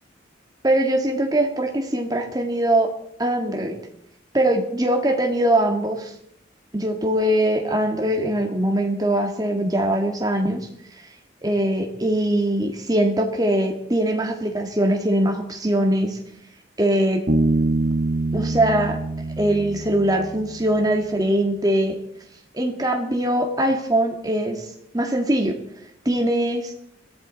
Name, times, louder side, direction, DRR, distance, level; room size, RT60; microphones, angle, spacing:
voice 1, 0.6-2.9 3.2-3.8 4.3-6.1 6.7-10.7 11.4-16.2 16.8-17.3 18.3-19.0 19.4-22.0 22.5-24.6 24.9-25.6 26.0-26.7, right 1 dB, 20° right, 4 dB, 1.6 m, -22 dB
Bass guitar, 17.3-20.8, right 2 dB, 45° right, 1.3 m, -24 dB
21.5 x 14.5 x 4.0 m, 0.71 s
head